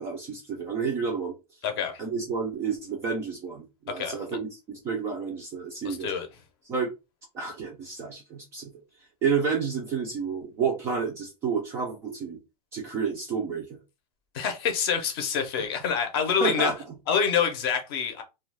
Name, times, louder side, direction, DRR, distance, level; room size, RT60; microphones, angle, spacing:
voice 1, 0.0-1.3 2.0-6.1 6.7-6.9 7.3-8.7 9.2-12.4 12.7-13.8 16.4-16.7, right 5 dB, 15° right, 0.4 m, -30 dB
voice 2, 1.6-2.0 3.9-4.2 5.8-6.3 14.3-16.7 17.1-18.2, left 7 dB, 35° left, 0.6 m, -26 dB
2.3 x 2.2 x 3.2 m
supercardioid pair, 165°, 20 cm